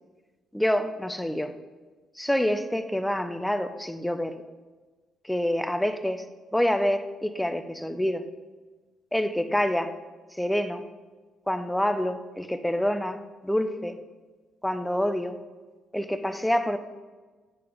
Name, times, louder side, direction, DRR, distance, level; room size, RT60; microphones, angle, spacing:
voice 1, 0.5-1.5 2.2-4.3 5.2-6.2 6.5-8.2 9.1-9.9 10.3-10.8 11.5-14.0 14.6-15.4 15.9-16.8, left 1 dB, 5° left, 9 dB, 0.9 m, -27 dB
10.0 x 6.7 x 5.1 m, 1.3 s
figure-of-eight pair, 45°, 0 cm